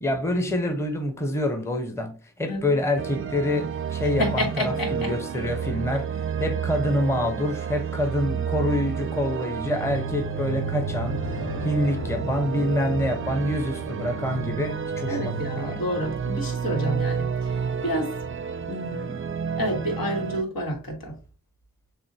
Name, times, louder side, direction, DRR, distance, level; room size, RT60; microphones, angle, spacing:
voice 1, 0.0-15.8, left 1 dB, 10° left, 0.7 m, -27 dB
voice 2, 2.5-2.8 4.2-5.1 15.1-18.2 18.7-19.2 19.6-21.2, equal, 90° left, 1.5 m, -29 dB
sound 1, 3.0-20.4, right 7 dB, 40° right, 0.4 m, -30 dB
sound 2, 8.3-18.1, left 1 dB, 70° left, 1.1 m, -38 dB
7.0 x 2.4 x 2.7 m
wide cardioid pair, 65°, 34 cm